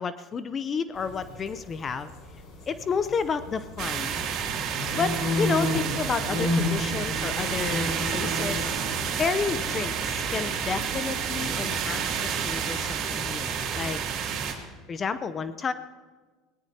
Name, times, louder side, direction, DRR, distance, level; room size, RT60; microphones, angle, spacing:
voice 1, 0.0-2.1 2.7-4.1 4.9-8.7 9.2-14.0 14.9-15.7, left 5 dB, 35° left, 13 dB, 0.6 m, -31 dB
sound 1, 1.0-13.9, left 1 dB, 60° left, 4.7 m, -34 dB
sound 2, 3.8-14.5, right 7 dB, 55° right, 2.7 m, -30 dB
22.0 x 18.0 x 2.8 m, 1.4 s
supercardioid pair, 95°, 0 cm